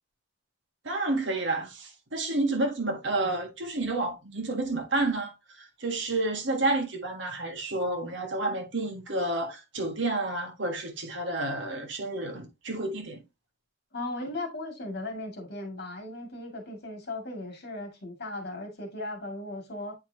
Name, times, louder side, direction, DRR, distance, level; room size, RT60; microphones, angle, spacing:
voice 1, 0.8-13.2, right 2 dB, 60° right, 1.6 m, -30 dB
voice 2, 13.9-20.0, left 2 dB, 50° left, 2.2 m, -37 dB
8.6 x 4.7 x 2.8 m
head